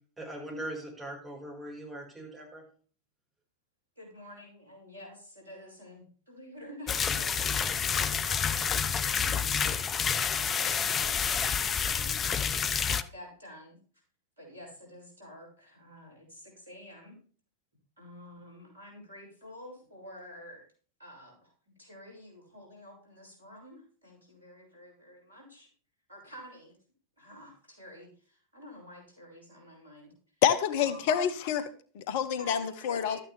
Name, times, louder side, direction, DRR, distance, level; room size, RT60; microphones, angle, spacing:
voice 1, 0.2-2.6, right 1 dB, 10° right, -2 dB, 5.2 m, -40 dB
voice 2, 4.0-12.4 12.7-13.8 14.4-17.2 18.0-20.6 21.0-21.5 21.8-25.7 26.1-26.8 27.2-30.1 30.8-31.0 32.3-33.2, equal, 75° right, -2 dB, 5.9 m, -49 dB
sound 1, 6.9-13.0, left 7 dB, 25° left, 0.5 m, -29 dB
voice 3, 30.4-33.2, left 8 dB, 50° left, 12 dB, 0.9 m, -28 dB
12.5 x 8.9 x 3.4 m, 0.42 s
figure-of-eight pair, 90°, 0 cm